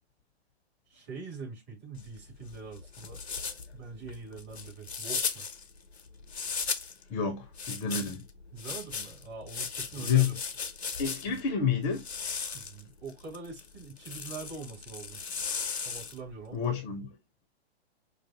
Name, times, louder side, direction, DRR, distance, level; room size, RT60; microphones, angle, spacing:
voice 1, 0.9-3.2 3.7-5.5 8.5-10.4 12.5-15.2 15.8-16.7, right 4 dB, 30° right, 2.7 m, -43 dB
sound 1, 2.0-7.0 7.6-11.5 11.9-16.3, left 5 dB, 75° left, 0.8 m, -37 dB
voice 2, 7.1-8.2 10.0-10.3 11.0-12.0 16.5-17.1, left 7 dB, 25° left, 0.8 m, -29 dB
5.2 x 2.7 x 2.6 m
figure-of-eight pair, 110°, 33 cm